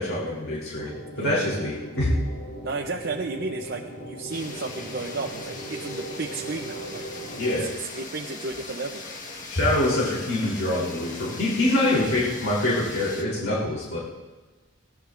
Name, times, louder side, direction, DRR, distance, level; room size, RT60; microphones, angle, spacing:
voice 1, 0.0-2.1 7.4-7.7 9.5-14.0, left 1 dB, 80° left, -5 dB, 3.6 m, -25 dB
sound 1, 0.7-7.6, right 1 dB, 55° left, 3.4 m, -39 dB
voice 2, 1.1-1.6 2.6-7.0 7.5-9.0, right 3 dB, 50° right, 1 dB, 0.7 m, -33 dB
sound 2, 4.3-13.2, left 3 dB, 40° left, 1.5 m, -40 dB
20.5 x 17.0 x 2.6 m, 1.3 s
head